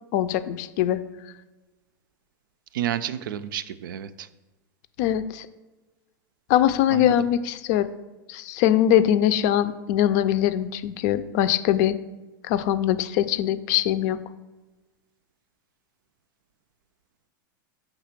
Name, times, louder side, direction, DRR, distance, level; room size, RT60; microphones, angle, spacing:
voice 1, 0.1-1.0 5.0-5.5 6.5-7.9 8.3-12.0 12.5-14.2, left 11 dB, 55° left, 13 dB, 0.5 m, -22 dB
voice 2, 2.7-4.3 6.9-7.2, right 11 dB, 80° right, 14 dB, 0.4 m, -30 dB
5.8 x 3.4 x 5.8 m, 1.2 s
hypercardioid pair, 120°, 11 cm